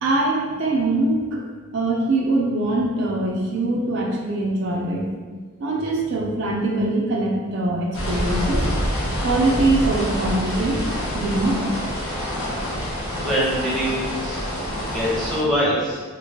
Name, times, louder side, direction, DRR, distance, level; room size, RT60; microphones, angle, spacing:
voice 1, 0.0-1.4 1.7-5.1 5.6-8.7 9.2-10.8 11.1-11.6, right 2 dB, 55° right, -1 dB, 0.4 m, -22 dB
sound 1, 7.9-15.4, equal, 65° left, 1.0 m, -26 dB
voice 2, 13.2-14.4 14.8-16.0, equal, ahead, -8 dB, 0.7 m, -23 dB
2.9 x 2.5 x 2.8 m, 1.5 s
head